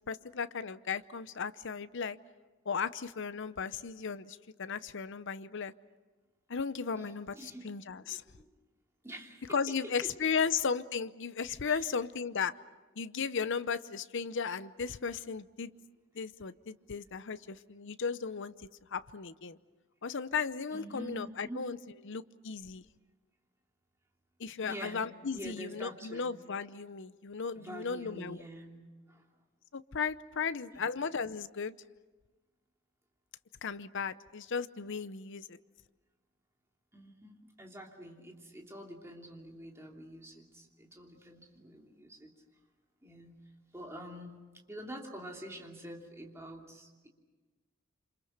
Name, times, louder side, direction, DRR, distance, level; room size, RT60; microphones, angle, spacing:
voice 1, 0.1-2.2 2.7-5.7 6.5-8.2 9.5-12.6 13.0-15.7 16.1-19.6 20.0-21.8 22.0-22.8 24.4-28.4 29.7-31.8 33.6-35.6, left 5 dB, 55° left, 14 dB, 0.7 m, -35 dB
voice 2, 7.0-8.5 9.0-10.1 11.6-11.9 20.7-21.6 24.6-25.0 25.3-26.4 27.5-28.8 29.1-29.2 30.7-30.8 36.9-42.3 43.0-43.4 43.7-44.4 44.7-47.1, equal, 10° right, 0 dB, 2.9 m, -47 dB
27.5 x 26.5 x 6.7 m, 1.3 s
head